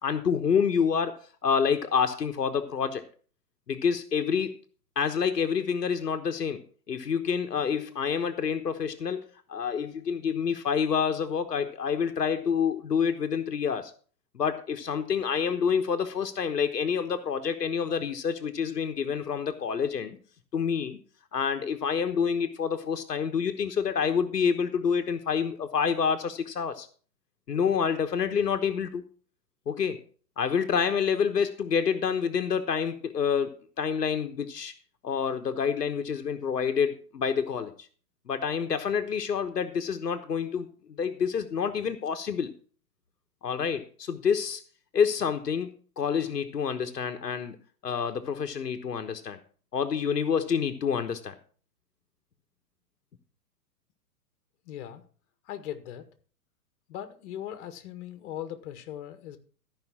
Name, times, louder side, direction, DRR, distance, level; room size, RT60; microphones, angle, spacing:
voice 1, 0.0-3.0 3.7-4.5 5.0-9.2 9.5-13.9 14.3-20.2 20.5-21.0 21.3-26.9 27.5-29.0 29.7-30.0 30.4-34.7 35.0-37.7 38.3-40.7 41.0-42.5 43.4-44.6 44.9-45.7 46.0-47.6 47.8-49.4 49.7-51.3, left 6 dB, 80° left, 7 dB, 1.2 m, -28 dB
voice 2, 54.6-55.0 55.4-56.1 56.9-59.4, left 11 dB, 45° left, 9 dB, 1.7 m, -39 dB
13.5 x 5.5 x 6.0 m, 0.42 s
figure-of-eight pair, 115°, 47 cm